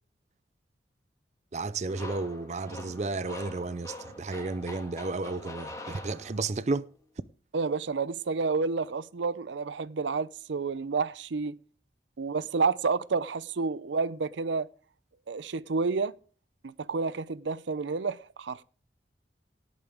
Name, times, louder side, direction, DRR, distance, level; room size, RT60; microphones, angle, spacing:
voice 1, 1.5-6.9, right 3 dB, 40° right, 0.5 m, -32 dB
sound 1, 1.9-6.7, left 2 dB, 15° left, 2.1 m, -44 dB
voice 2, 7.5-11.6 12.2-14.7 15.3-16.1 16.6-18.6, right 4 dB, 85° right, 0.6 m, -30 dB
18.0 x 8.8 x 3.5 m
head